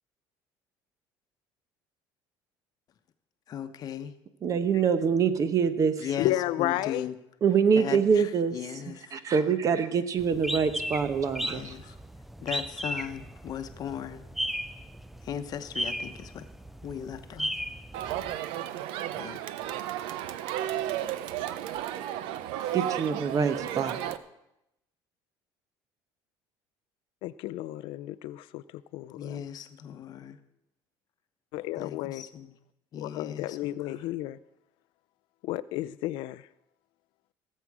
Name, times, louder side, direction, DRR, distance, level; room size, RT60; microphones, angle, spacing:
voice 1, 3.5-4.1 4.7-4.8 6.0-7.2 7.7-9.2 11.4-12.0 12.4-14.2 15.2-16.5 16.8-17.5 19.1-19.6 29.1-30.4 31.7-32.6 32.9-34.1, left 9 dB, 45° left, 0.9 m, -38 dB
voice 2, 4.4-6.0 7.4-8.6 9.1-11.7 22.7-24.0, right 6 dB, 40° right, 1.0 m, -25 dB
voice 3, 6.2-7.1 27.2-28.6 28.9-29.4 31.5-32.2 33.0-34.4 35.4-36.4, left 15 dB, 75° left, 0.4 m, -32 dB
sound 1, 10.2-18.4, equal, ahead, 0.4 m, -36 dB
Crowd, 17.9-24.2, right 12 dB, 80° right, 0.6 m, -33 dB
17.5 x 7.5 x 4.8 m
cardioid pair, 120°, 9 cm